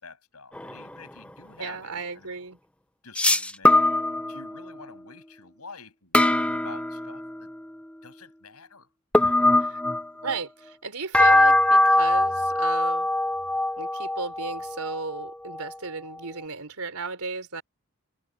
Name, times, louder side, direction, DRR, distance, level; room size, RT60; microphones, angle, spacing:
voice 1, 0.0-2.3 3.0-3.8 4.2-7.5 8.0-8.9 9.2-9.5, left 4 dB, 85° left, 7.7 m, -48 dB
sound 1, 0.6-0.8 3.2-4.6 6.1-7.4 9.1-10.4 11.1-15.7, left 1 dB, 5° left, 0.6 m, -22 dB
voice 2, 1.6-2.6 9.7-9.8 10.2-13.1 13.8-17.6, right 4 dB, 90° right, 3.5 m, -35 dB
head